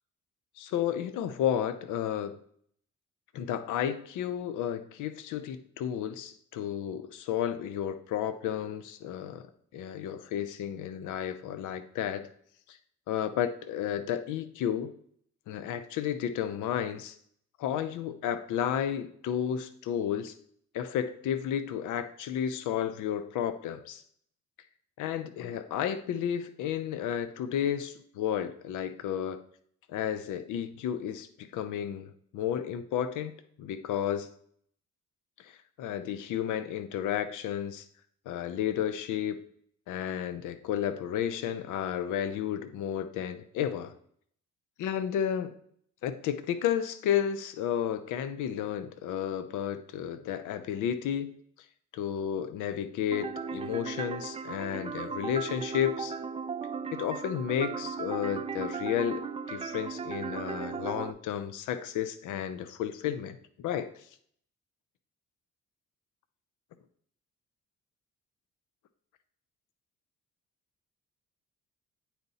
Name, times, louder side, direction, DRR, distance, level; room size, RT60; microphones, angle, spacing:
voice 1, 0.6-2.4 3.3-9.5 9.7-12.3 12.7-12.8 13.1-14.9 15.5-17.2 17.6-20.3 20.7-24.0 25.0-29.4 29.9-33.3 33.6-34.3 35.4-37.9 38.3-39.4 39.9-43.9 44.8-45.5 46.0-51.3 51.9-56.2 56.9-64.1, left 9 dB, 85° left, 11 dB, 0.6 m, -32 dB
sound 1, 53.1-61.1, right 5 dB, 20° right, 0.4 m, -36 dB
8.9 x 4.2 x 4.1 m, 0.63 s
cardioid pair, 90°, 30 cm